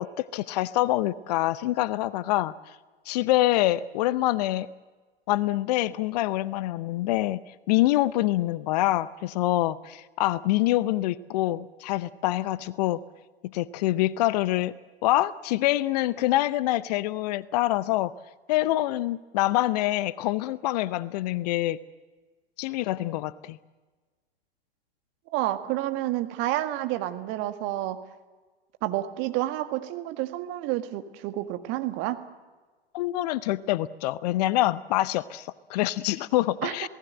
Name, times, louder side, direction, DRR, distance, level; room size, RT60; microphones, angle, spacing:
voice 1, 0.0-2.5 3.1-4.7 5.3-7.4 7.7-13.0 13.5-14.7 15.0-18.1 18.5-21.8 22.6-23.6 32.9-36.9, left 16 dB, 40° left, 18 dB, 0.6 m, -25 dB
voice 2, 25.3-28.0 28.8-32.2 36.6-36.9, right 14 dB, 35° right, 9 dB, 1.7 m, -29 dB
27.0 x 18.5 x 7.8 m, 1.3 s
figure-of-eight pair, 105°, 32 cm